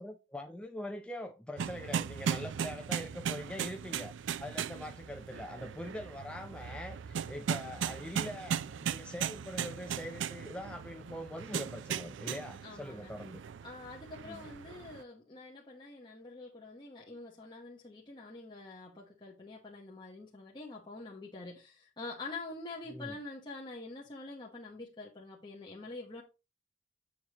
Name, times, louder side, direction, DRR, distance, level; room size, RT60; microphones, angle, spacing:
voice 1, 0.0-4.1 4.4-13.4 14.2-14.5 22.9-23.2, left 1 dB, 5° left, 0.5 m, -43 dB
sound 1, 1.6-15.0, right 8 dB, 70° right, 0.4 m, -38 dB
voice 2, 12.6-13.1 13.6-26.2, left 3 dB, 25° left, 1.2 m, -46 dB
7.2 x 6.4 x 3.0 m
head